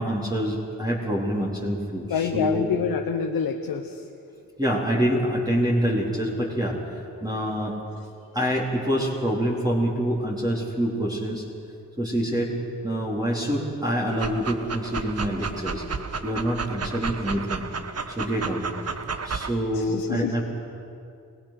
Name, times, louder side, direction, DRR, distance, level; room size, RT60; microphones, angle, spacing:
voice 1, 0.0-2.7 4.6-6.8 7.2-7.8 8.3-11.4 12.0-12.5 12.8-15.8 16.2-17.6 18.2-18.7 19.2-20.4, equal, 10° right, -4 dB, 4.1 m, -26 dB
voice 2, 2.1-4.1 19.7-20.4, left 7 dB, 75° left, 4 dB, 1.3 m, -27 dB
Dog, 14.1-19.5, right 5 dB, 45° right, 1.4 m, -32 dB
29.5 x 17.0 x 6.1 m, 2.5 s
supercardioid pair, 50°, 36 cm